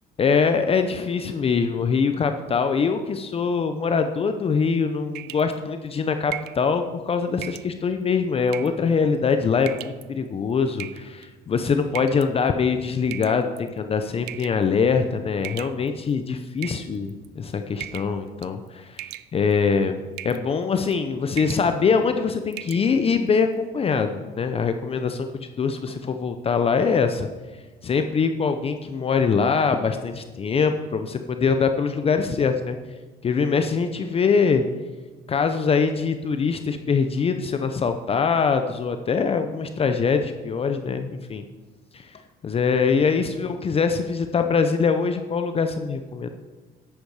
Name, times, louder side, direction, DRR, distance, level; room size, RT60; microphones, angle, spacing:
voice 1, 0.2-20.0 20.2-27.3 27.8-32.8 33.2-34.6 35.3-41.4 41.9-46.3, left 5 dB, 35° left, 8 dB, 0.7 m, -23 dB
sound 1, 5.1-5.6 6.3-6.6 7.4-7.7 8.5-8.8 9.6-10.0 10.8-11.3 11.9-12.3 13.1-13.7 14.3-14.6 15.4-16.1 16.6-17.3 17.8-18.2 18.4-18.7 19.0-19.6 20.2-20.4 20.8-21.0 21.3-21.7 22.0-22.1 22.5-22.8, right 14 dB, 75° right, 0.4 m, -37 dB
10.5 x 8.2 x 4.8 m, 1.3 s
cardioid pair, 110°, 17 cm